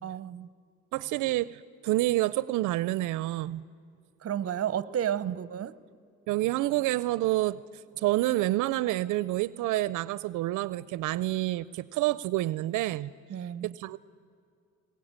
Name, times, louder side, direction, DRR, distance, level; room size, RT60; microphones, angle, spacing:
voice 1, 0.0-0.5 4.2-5.8 13.3-13.7, right 10 dB, 50° right, 17 dB, 0.8 m, -32 dB
voice 2, 0.9-3.6 5.3-5.4 6.3-7.6 8.0-13.1 13.4-14.0, right 17 dB, 90° right, 19 dB, 0.5 m, -28 dB
21.5 x 20.0 x 8.7 m, 2.3 s
cardioid pair, 90°, 30 cm